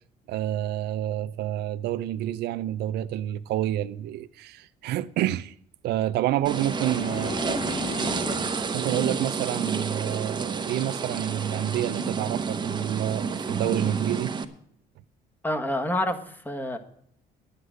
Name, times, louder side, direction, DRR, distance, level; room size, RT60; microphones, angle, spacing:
voice 1, 0.3-5.5 5.8-7.4 8.7-14.3, right 12 dB, 75° right, 0.5 m, -28 dB
sound 1, 6.4-14.4, right 5 dB, 25° right, 0.9 m, -30 dB
sound 2, 6.5-8.6, left 6 dB, 45° left, 1.5 m, -35 dB
voice 2, 15.4-16.8, left 1 dB, 10° left, 1.4 m, -28 dB
9.9 x 9.7 x 6.4 m
cardioid pair, 110°, 17 cm